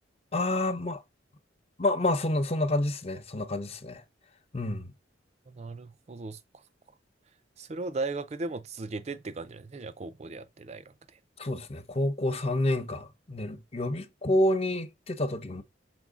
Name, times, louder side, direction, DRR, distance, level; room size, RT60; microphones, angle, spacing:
voice 1, 0.3-1.0 1.8-4.0 4.5-4.9 11.4-15.6, left 1 dB, 35° left, 0.7 m, -28 dB
voice 2, 5.5-6.4 7.6-10.8, right 3 dB, 35° right, 0.4 m, -37 dB
6.1 x 4.4 x 3.7 m
head